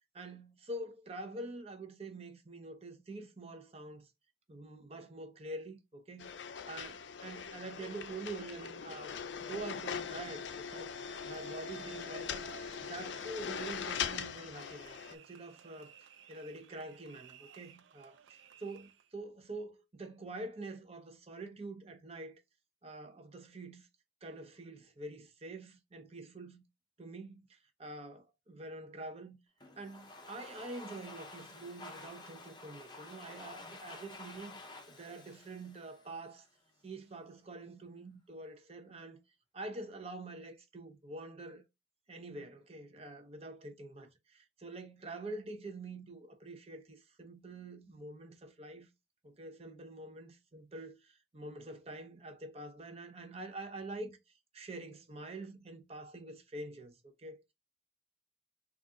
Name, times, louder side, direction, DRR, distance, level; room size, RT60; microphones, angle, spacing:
voice 1, 0.1-4.1 4.5-10.9 11.2-12.5 12.8-15.9 16.3-18.8 19.1-22.4 22.8-23.9 24.2-26.6 27.0-29.4 29.8-36.5 36.8-39.2 39.5-41.6 42.1-48.9 49.2-54.2 54.5-57.4, right 2 dB, 30° right, 0.7 m, -46 dB
sound 1, 6.2-15.1, left 7 dB, 70° left, 0.4 m, -41 dB
sound 2, 10.2-19.1, right 7 dB, 80° right, 0.5 m, -56 dB
Domestic sounds home sounds, 29.6-36.5, left 2 dB, 25° left, 0.6 m, -51 dB
3.9 x 2.4 x 3.6 m
head